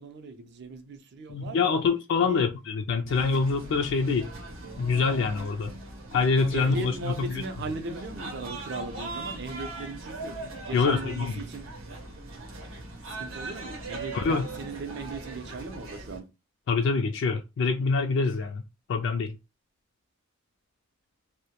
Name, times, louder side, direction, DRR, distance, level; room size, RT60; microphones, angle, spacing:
voice 1, 0.0-1.8 2.2-2.5 6.5-10.3 10.7-11.7 13.1-16.2, right 3 dB, 55° right, 0.5 m, -38 dB
voice 2, 1.3-4.3 4.8-5.7 6.1-7.4 10.7-11.3 14.1-14.5 16.7-18.6 18.9-19.3, left 4 dB, 60° left, 0.3 m, -25 dB
sound 1, 3.1-16.2, right 2 dB, 90° right, 0.7 m, -40 dB
2.1 x 2.0 x 2.8 m
head